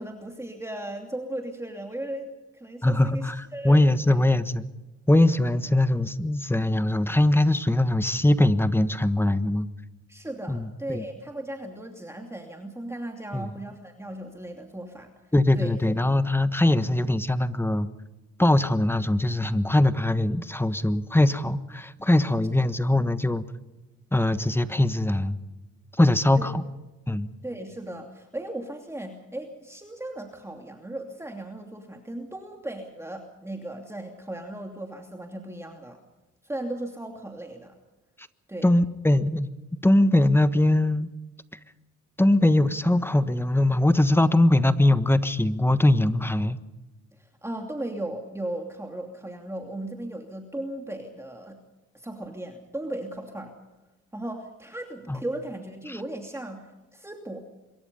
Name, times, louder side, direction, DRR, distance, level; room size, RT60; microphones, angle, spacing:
voice 1, 0.0-3.8 4.1-4.2 10.1-15.7 26.4-26.5 27.4-36.0 36.4-37.7 38.5-38.7 47.2-51.6 51.9-53.5 54.1-57.4, right 1 dB, 10° right, 3 dB, 2.8 m, -36 dB
voice 2, 2.8-4.7 5.1-9.7 10.5-11.0 13.3-13.5 15.3-17.9 18.4-23.4 24.1-25.4 25.9-26.6 27.1-27.3 38.6-39.5 39.8-41.1 42.2-46.6 55.1-55.2 55.9-56.0, left 1 dB, 5° left, 12 dB, 1.3 m, -21 dB
26.0 x 23.0 x 5.4 m, 1.1 s
cardioid pair, 90°, 30 cm